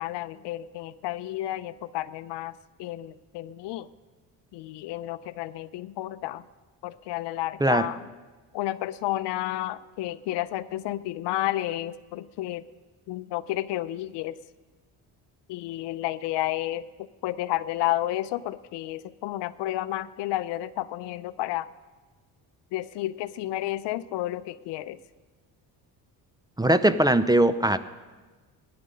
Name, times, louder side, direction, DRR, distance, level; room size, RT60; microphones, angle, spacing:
voice 1, 0.0-2.5 2.8-3.9 4.5-6.4 6.8-8.1 8.5-12.7 13.1-14.4 15.5-21.7 22.7-25.0, left 15 dB, 75° left, 15 dB, 0.6 m, -31 dB
voice 2, 26.6-27.8, right 1 dB, 10° right, 13 dB, 0.6 m, -20 dB
15.5 x 10.5 x 5.4 m, 1.3 s
supercardioid pair, 75°, 42 cm